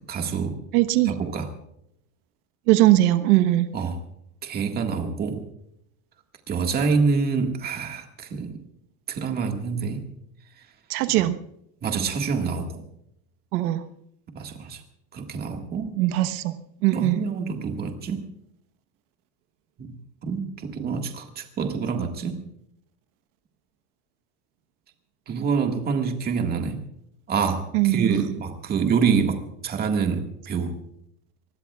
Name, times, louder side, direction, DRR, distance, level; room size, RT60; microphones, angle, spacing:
voice 1, 0.1-0.6 1.1-1.5 3.7-4.0 4.4-5.5 6.5-8.6 9.1-10.1 11.2-11.3 11.8-12.8 14.3-14.8 15.1-16.0 16.9-18.3 19.8-20.0 20.2-22.4 25.3-26.8 27.3-30.8, right 5 dB, 20° right, 4 dB, 1.7 m, -26 dB
voice 2, 0.7-1.1 2.7-3.7 10.9-11.4 13.5-13.8 16.0-16.5 16.8-17.2 27.7-28.3, right 15 dB, 85° right, 10 dB, 1.2 m, -20 dB
25.0 x 20.5 x 2.4 m, 0.74 s
supercardioid pair, 170°, 44 cm